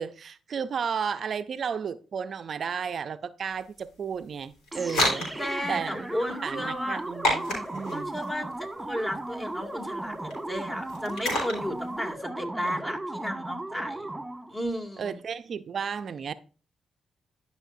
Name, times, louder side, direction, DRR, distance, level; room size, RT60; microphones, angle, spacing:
voice 1, 0.0-5.3 5.7-6.1 6.4-8.1 15.0-16.3, right 6 dB, 60° right, 0.5 m, -33 dB
sound 1, 3.5-12.1, left 1 dB, 85° left, 4.4 m, -33 dB
sound 2, 4.7-14.6, right 2 dB, 15° right, 1.7 m, -36 dB
voice 2, 5.4-7.0 7.9-14.1 14.5-15.2, equal, 25° left, 2.5 m, -33 dB
12.5 x 5.6 x 2.6 m
supercardioid pair, 55°, 0 cm